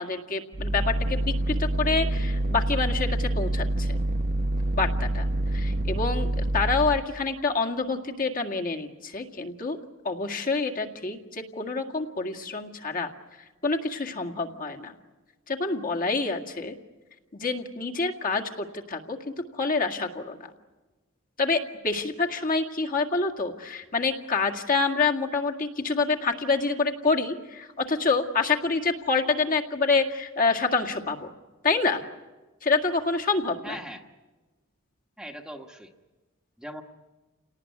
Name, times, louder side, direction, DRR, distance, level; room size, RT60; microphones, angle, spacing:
voice 1, 0.0-4.0 4.7-9.8 10.0-13.1 13.6-14.9 15.5-16.7 17.3-20.5 21.4-31.3 31.6-32.0 32.6-33.8, left 4 dB, 45° left, 1 dB, 2.0 m, -27 dB
sound 1, 0.5-7.1, right 1 dB, 50° right, 0.8 m, -27 dB
voice 2, 33.6-34.0 35.2-35.9 36.6-36.8, equal, 5° right, 2 dB, 1.3 m, -40 dB
29.0 x 18.5 x 9.5 m, 1.2 s
head